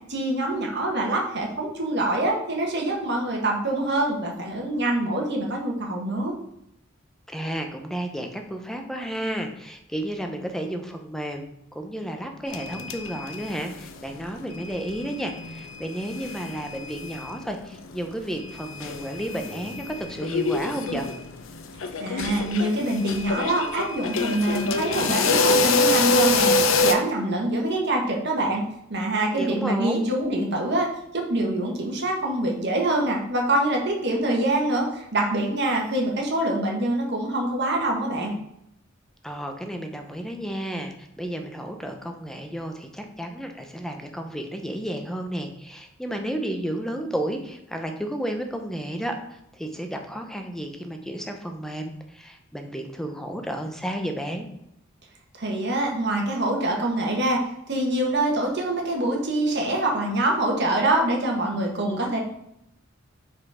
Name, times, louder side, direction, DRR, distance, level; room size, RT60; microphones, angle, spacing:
voice 1, 0.1-6.3 22.0-28.6 28.9-30.9 31.1-38.3 55.4-57.4 57.7-62.2, right 1 dB, 60° right, 0 dB, 1.5 m, -25 dB
voice 2, 7.3-11.5 11.7-21.1 29.3-30.1 39.2-54.5, right 1 dB, ahead, 4 dB, 0.7 m, -32 dB
sound 1, 12.5-13.9 14.1-17.4 17.7-17.8 18.3-26.9, left 3 dB, 80° left, 0.6 m, -26 dB
5.2 x 4.3 x 4.8 m, 0.78 s
head